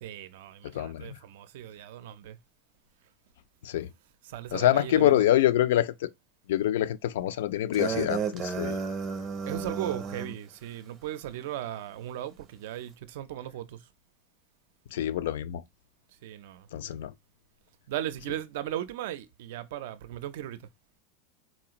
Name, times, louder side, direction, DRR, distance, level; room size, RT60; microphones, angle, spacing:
voice 1, 0.0-2.4 4.3-5.1 9.5-13.8 16.2-16.7 17.9-20.6, right 12 dB, 70° right, 0.4 m, -37 dB
voice 2, 0.6-1.2 3.6-3.9 4.5-6.1 6.5-8.8 14.9-15.6 16.7-17.1, left 12 dB, 90° left, 0.3 m, -26 dB
sound 1, 7.7-10.4, right 5 dB, 25° right, 0.6 m, -32 dB
4.1 x 2.5 x 2.9 m
supercardioid pair, 170°, 0 cm